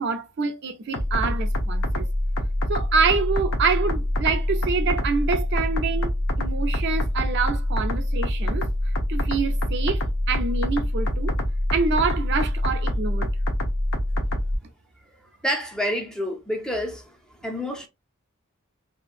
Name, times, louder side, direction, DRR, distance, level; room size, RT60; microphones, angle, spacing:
voice 1, 0.0-2.1 2.7-6.1 6.4-8.7 9.1-10.0 10.3-11.3 11.7-13.3, right 5 dB, 55° right, 0.5 m, -26 dB
sound 1, 0.9-14.6, left 1 dB, 85° left, 0.7 m, -25 dB
voice 2, 15.4-17.2 17.4-17.9, equal, 5° left, 0.4 m, -28 dB
2.9 x 2.5 x 2.4 m
head